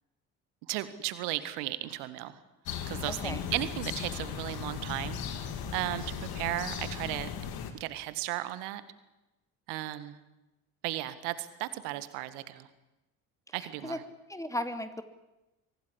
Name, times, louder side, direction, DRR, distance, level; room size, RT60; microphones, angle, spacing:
voice 1, 0.7-2.4 2.9-5.2 5.7-7.3 7.8-8.8 9.7-10.2 10.8-12.7 13.5-14.0, right 16 dB, 70° right, 13 dB, 1.8 m, -35 dB
sound 1, 2.7-7.7, left 8 dB, 60° left, 3.4 m, -37 dB
voice 2, 3.1-3.5 13.5-14.0 14.3-15.0, left 1 dB, 5° left, 9 dB, 2.7 m, -36 dB
24.5 x 17.5 x 10.0 m, 0.99 s
hypercardioid pair, 55°, 42 cm